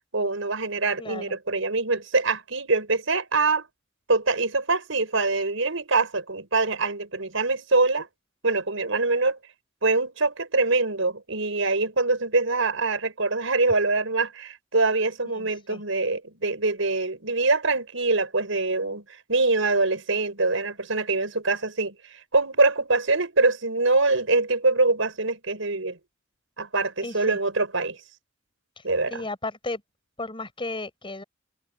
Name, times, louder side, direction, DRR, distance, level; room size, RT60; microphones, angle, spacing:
voice 1, 0.1-3.7 4.1-8.1 8.4-9.4 9.8-21.9 22.3-26.0 26.6-28.0 28.8-29.2, right 3 dB, 80° right, 5.3 m, -24 dB
voice 2, 1.0-1.4 15.4-15.8 27.0-27.4 28.8-29.8 30.2-31.2, left 2 dB, 25° left, 5.2 m, -35 dB
head